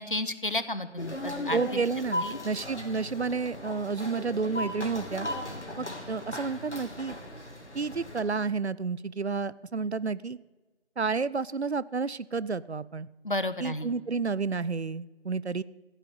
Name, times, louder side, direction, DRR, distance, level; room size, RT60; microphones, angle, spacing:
voice 1, 0.0-1.8 2.2-2.4 5.7-5.9 13.2-13.9, left 2 dB, 50° left, 13 dB, 1.0 m, -32 dB
sound 1, 1.0-8.2, left 1 dB, 85° left, 3.2 m, -37 dB
voice 2, 1.5-5.3 5.8-7.2 7.7-10.4 11.0-13.1 13.6-15.6, right 4 dB, 70° right, 19 dB, 0.7 m, -30 dB
15.0 x 9.0 x 8.6 m, 1.2 s
figure-of-eight pair, 170°, 34 cm